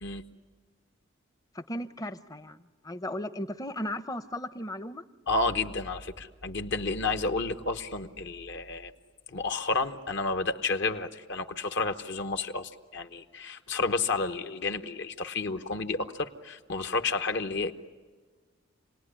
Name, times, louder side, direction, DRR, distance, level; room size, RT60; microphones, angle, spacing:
voice 1, 1.5-5.0, left 1 dB, 15° left, 12 dB, 0.7 m, -36 dB
voice 2, 5.3-8.9 9.3-17.7, left 3 dB, 55° left, 8 dB, 1.1 m, -31 dB
28.5 x 19.0 x 10.0 m, 1.4 s
head